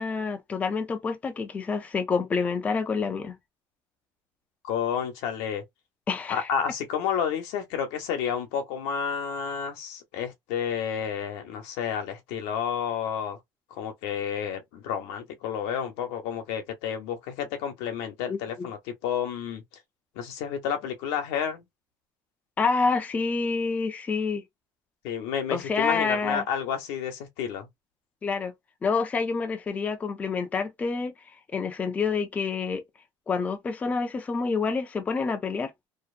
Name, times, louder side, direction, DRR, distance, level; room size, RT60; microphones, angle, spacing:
voice 1, 0.0-3.3 6.1-6.5 18.3-18.7 22.6-24.4 25.5-26.4 28.2-28.5 28.8-31.1 31.5-32.8 33.3-35.7, left 4 dB, 15° left, 0.4 m, -28 dB
voice 2, 4.6-5.6 6.3-13.4 13.7-19.6 20.2-21.6 25.0-27.7, left 8 dB, 85° left, 0.8 m, -30 dB
2.7 x 2.0 x 2.4 m
cardioid pair, 160°, 9 cm